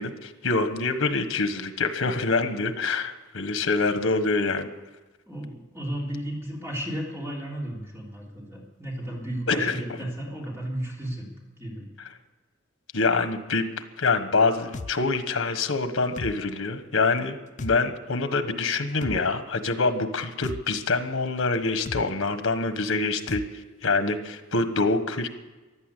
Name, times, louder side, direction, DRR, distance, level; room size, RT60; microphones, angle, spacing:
voice 1, 0.0-4.7 9.5-10.0 12.9-13.7 14.0-25.3, left 3 dB, 85° left, 9 dB, 1.4 m, -25 dB
voice 2, 5.3-11.9, right 1 dB, 15° right, -3 dB, 3.5 m, -34 dB
sound 1, 14.7-14.9 16.2-16.4 17.6-17.8 19.0-19.2 20.4-20.6 21.8-22.0 23.3-23.5, left 3 dB, 40° left, 0.5 m, -35 dB
15.5 x 11.0 x 8.3 m, 1.2 s
head